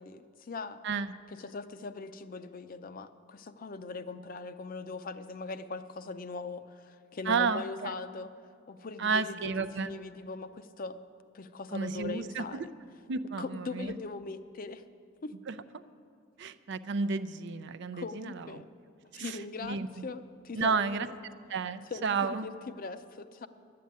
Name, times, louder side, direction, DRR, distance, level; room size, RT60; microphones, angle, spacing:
voice 1, 0.0-0.8 1.3-8.3 8.7-11.0 11.3-12.7 13.4-14.8 15.2-15.3 17.9-18.7 19.0-21.1 21.9-23.5, left 3 dB, 45° left, 11 dB, 0.5 m, -40 dB
voice 2, 7.3-7.9 9.0-9.9 11.7-12.7 13.1-13.9 15.5-15.6 16.4-18.6 19.1-20.1 20.5-21.1 21.5-22.5, right 5 dB, 60° right, 13 dB, 0.5 m, -32 dB
11.5 x 7.7 x 9.4 m, 2.4 s
head